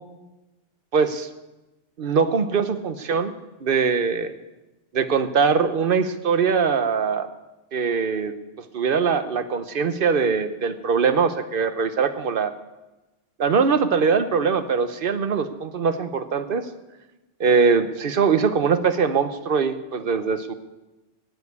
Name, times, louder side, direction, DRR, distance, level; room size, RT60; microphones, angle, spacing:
voice 1, 0.9-1.3 2.0-3.3 3.6-4.3 4.9-7.3 7.7-8.3 8.7-12.5 13.4-16.7 17.4-20.5, right 5 dB, 50° right, 11 dB, 1.1 m, -22 dB
18.0 x 7.2 x 8.2 m, 1.1 s
omnidirectional pair, 1.2 m